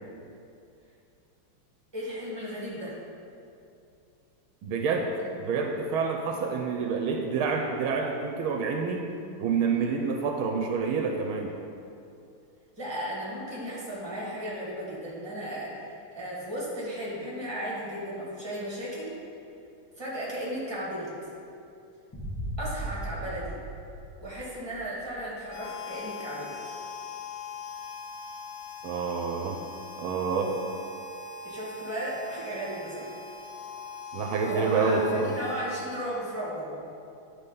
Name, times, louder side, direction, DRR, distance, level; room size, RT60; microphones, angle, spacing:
voice 1, 1.9-3.0 9.7-10.0 12.8-15.8 16.1-19.2 20.0-21.1 22.6-23.6 24.2-26.5 31.4-33.1 34.4-36.8, equal, 10° right, -6 dB, 2.0 m, -35 dB
voice 2, 4.6-5.1 5.4-9.1 9.4-11.5 28.8-29.6 30.0-30.6 34.1-35.4, right 5 dB, 80° right, 2 dB, 1.4 m, -28 dB
Boom, 22.1-25.1, right 1 dB, 20° left, 0.5 m, -37 dB
Harmonica, 25.5-36.5, left 5 dB, 85° left, 1.8 m, -41 dB
9.8 x 4.0 x 5.4 m, 2.5 s
omnidirectional pair, 2.3 m